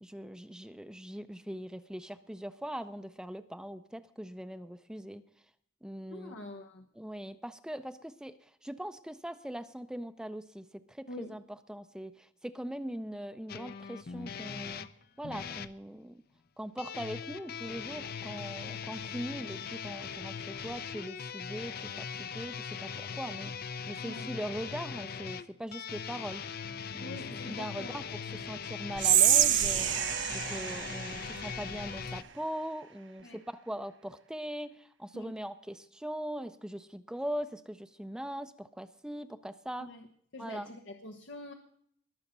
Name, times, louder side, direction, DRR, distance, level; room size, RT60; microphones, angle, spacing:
voice 1, 0.0-5.2 5.8-6.4 7.0-8.4 8.6-14.8 15.2-16.2 16.6-26.4 26.9-27.2 27.4-29.9 30.3-39.9 40.4-40.7, equal, 5° right, 10 dB, 0.4 m, -41 dB
voice 2, 6.1-6.9 11.1-11.4 24.0-24.3 27.0-28.4 33.2-33.4 35.1-35.3 39.8-40.1 40.3-41.5, left 1 dB, 85° left, 2 dB, 1.1 m, -45 dB
sound 1, 13.5-15.7 16.8-32.2, left 6 dB, 55° left, 0.6 m, -40 dB
Whispering, 29.0-32.2, right 11 dB, 85° right, 1.1 m, -27 dB
20.5 x 7.0 x 5.3 m, 0.65 s
head